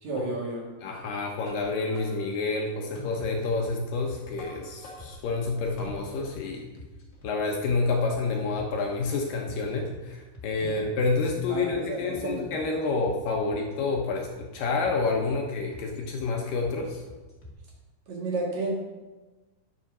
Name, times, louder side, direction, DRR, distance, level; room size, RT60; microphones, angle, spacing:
voice 1, 0.0-0.7 10.6-10.7 11.5-12.6 18.1-18.7, right 2 dB, 50° right, -2 dB, 3.0 m, -32 dB
voice 2, 0.8-6.7 7.2-17.0, left 3 dB, 70° left, 1 dB, 2.4 m, -29 dB
sound 1, 1.0-6.5, left 1 dB, 45° left, 2.4 m, -46 dB
sound 2, 3.4-17.5, left 3 dB, 30° left, 1.7 m, -47 dB
11.5 x 7.1 x 6.1 m, 1.2 s
omnidirectional pair, 4.6 m